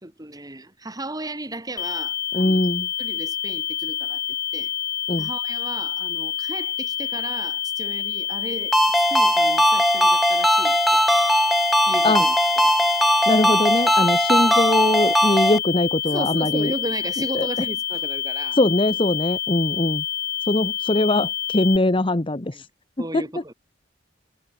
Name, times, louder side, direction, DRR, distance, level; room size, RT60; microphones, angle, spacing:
voice 1, 0.0-2.6 3.0-4.2 4.5-4.7 5.2-11.0 11.9-12.4 12.6-12.7 16.0-18.6 22.5-22.6 23.0-23.5, right 1 dB, 20° right, 3.4 m, -34 dB
sound 1, 1.8-21.8, left 10 dB, 55° left, 2.0 m, -28 dB
voice 2, 2.3-2.9 5.1-5.3 12.0-12.2 13.3-16.7 17.3-17.5 18.6-20.0 20.5-22.5 23.1-23.2, left 2 dB, 30° left, 1.0 m, -21 dB
Ringtone, 8.7-15.6, equal, ahead, 0.8 m, -19 dB
head